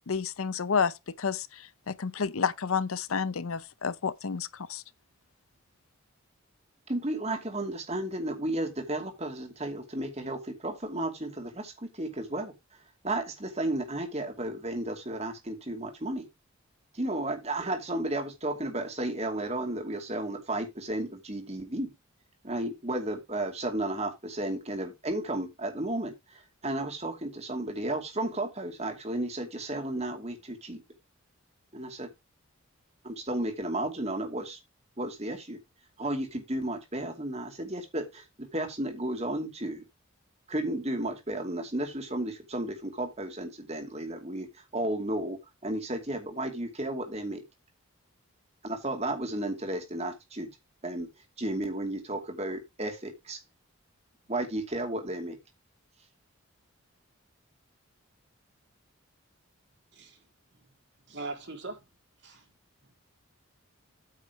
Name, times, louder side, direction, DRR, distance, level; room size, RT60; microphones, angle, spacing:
voice 1, 0.1-4.8, left 6 dB, 75° left, 0.7 m, -30 dB
voice 2, 6.9-12.5 13.0-16.3 16.9-21.9 22.4-30.8 31.7-32.1 33.0-34.6 35.0-35.6 36.0-39.8 40.5-47.4 48.6-50.5 50.8-51.1 51.4-53.4 54.3-55.4, right 1 dB, 30° right, 2.6 m, -33 dB
voice 3, 59.9-60.2 60.5-60.6 61.1-61.9 62.2-62.5 62.8-62.9, right 3 dB, 55° right, 3.3 m, -41 dB
9.1 x 6.0 x 4.8 m
head